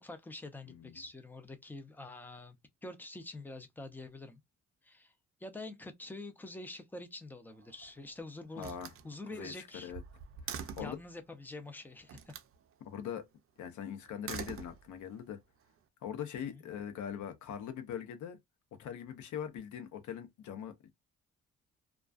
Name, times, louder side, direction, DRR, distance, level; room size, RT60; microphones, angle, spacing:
voice 1, 0.0-4.4 4.8-5.1 5.4-8.8 9.0-9.9 10.8-12.3 16.4-16.7, left 2 dB, 5° left, 0.5 m, -46 dB
voice 2, 0.7-1.0 8.6-8.9 9.3-10.0 10.4-11.0 12.8-13.3 13.6-15.4 16.0-18.4 18.8-20.9, left 8 dB, 75° left, 0.8 m, -42 dB
Slam, 7.5-8.1 8.6-11.1 12.1-12.5 14.0-15.2, right 7 dB, 50° right, 0.5 m, -45 dB
2.3 x 2.2 x 2.4 m
cardioid pair, 90°, 30 cm